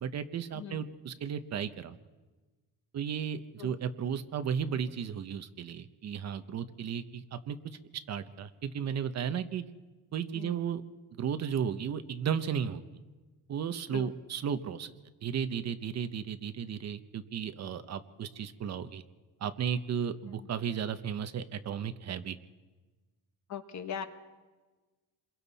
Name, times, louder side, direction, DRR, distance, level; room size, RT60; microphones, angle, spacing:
voice 1, 0.0-2.0 2.9-7.8 8.1-9.6 10.1-10.8 11.2-12.8 13.5-14.9 15.2-19.0 19.4-22.4, right 8 dB, 45° right, 10 dB, 1.0 m, -34 dB
voice 2, 0.5-0.9 3.6-3.8 10.3-10.6 13.9-14.2 20.4-20.5 23.5-24.1, left 8 dB, 50° left, 8 dB, 1.4 m, -40 dB
27.5 x 22.5 x 4.2 m, 1.3 s
cardioid pair, 150°, 35 cm